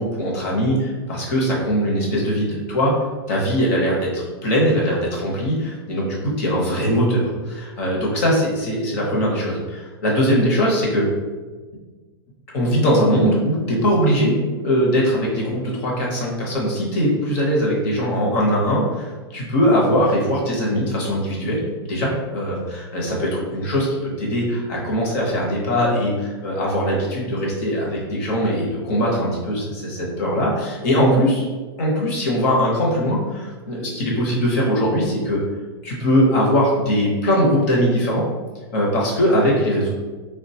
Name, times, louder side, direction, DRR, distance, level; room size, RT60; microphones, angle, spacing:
voice 1, 0.0-3.0 3.3-11.1 12.5-14.4 14.6-23.9 24.2-31.5 31.8-35.4 35.8-38.3 38.7-39.9, equal, 35° left, -3 dB, 0.8 m, -21 dB
3.6 x 2.2 x 2.7 m, 1.3 s
supercardioid pair, 170°, 14 cm